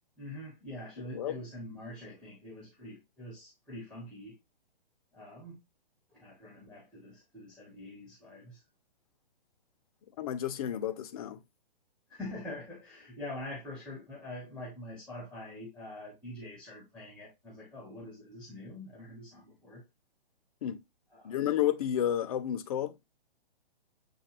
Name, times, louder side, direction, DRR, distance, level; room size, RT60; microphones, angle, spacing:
voice 1, 0.2-4.3 5.1-5.6 6.1-8.6 12.1-19.8 21.1-21.5, left 1 dB, 5° left, 0.7 m, -45 dB
voice 2, 10.2-11.4 20.6-20.8 21.2-22.9, left 11 dB, 40° left, 0.5 m, -31 dB
6.7 x 2.2 x 2.9 m
hypercardioid pair, 130°, 29 cm